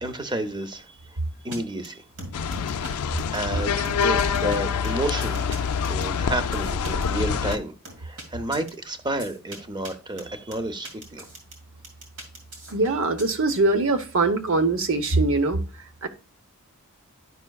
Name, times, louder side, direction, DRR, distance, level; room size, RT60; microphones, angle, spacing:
voice 1, 0.0-0.9 1.4-2.0 2.9-3.0 3.3-5.4 5.9-7.7 8.0-11.2, right 1 dB, 20° right, 0.7 m, -30 dB
sound 1, 1.5-1.6 1.8-1.9 2.2-2.9 3.2-4.6 4.8-7.0 7.5-8.2 8.5-8.7 9.2-9.6 9.8-9.9 10.2-11.5 11.8-13.2, right 1 dB, 80° right, 2.4 m, -39 dB
sound 2, 2.3-7.6, left 6 dB, 80° left, 0.4 m, -26 dB
voice 2, 12.7-15.6 16.0-16.1, right 3 dB, 65° right, 0.8 m, -22 dB
11.0 x 5.5 x 2.3 m
head